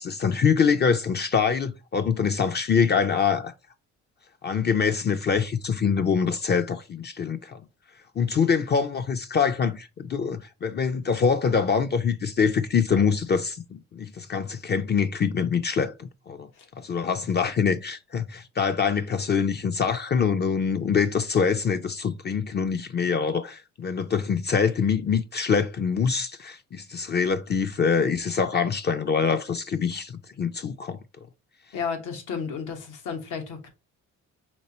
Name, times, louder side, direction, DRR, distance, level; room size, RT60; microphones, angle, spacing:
voice 1, 0.0-3.5 4.4-7.6 8.2-16.5 16.8-30.1 30.4-31.0, left 6 dB, 35° left, 0.4 m, -24 dB
voice 2, 31.7-33.7, left 6 dB, 85° left, 1.2 m, -32 dB
4.3 x 3.2 x 2.9 m
cardioid pair, 90°, 30 cm